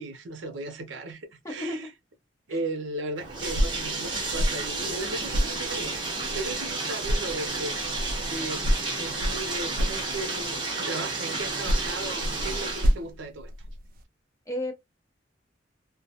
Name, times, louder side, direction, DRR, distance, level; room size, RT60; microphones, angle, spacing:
voice 1, 0.0-1.9 2.5-5.9 6.3-7.8 8.3-8.7 9.0-13.5, right 2 dB, 85° right, 0.6 m, -36 dB
voice 2, 1.4-1.9 2.5-2.6 14.5-14.7, left 1 dB, 15° left, 0.8 m, -33 dB
Bathtub (filling or washing), 3.2-12.9, right 3 dB, 25° right, 0.8 m, -32 dB
sound 1, 3.4-6.7 7.0-10.6 11.4-14.0, equal, 50° right, 0.3 m, -30 dB
2.2 x 2.1 x 2.7 m
head